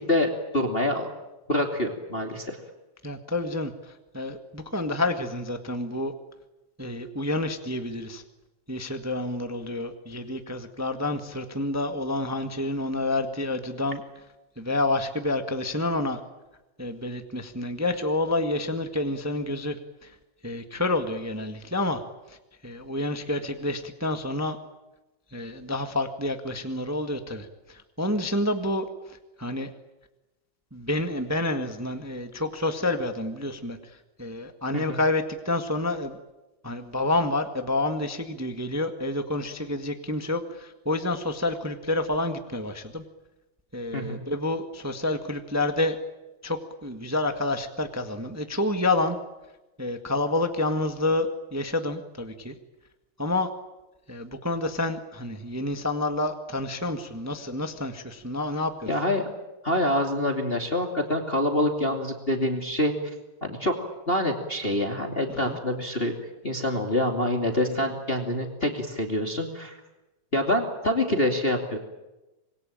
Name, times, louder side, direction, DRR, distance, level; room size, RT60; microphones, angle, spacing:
voice 1, 0.1-1.1 1.5-2.6 34.7-35.0 43.9-44.2 58.9-59.2 59.6-62.9 63.4-63.7 64.1-66.1 66.4-69.8 70.3-71.8, left 1 dB, 20° left, 3 dB, 2.5 m, -26 dB
voice 2, 3.0-6.1 6.8-8.2 8.7-14.0 14.6-16.2 16.8-19.8 20.0-20.1 20.4-22.0 22.3-22.4 22.6-24.6 25.3-29.7 30.7-33.8 34.2-36.2 36.6-43.0 43.7-46.0 46.4-49.2 49.8-52.5 53.2-53.5 54.1-58.9 65.5-65.6, left 2 dB, 15° right, 6 dB, 0.6 m, -29 dB
26.0 x 22.5 x 9.0 m, 1.0 s
omnidirectional pair, 3.6 m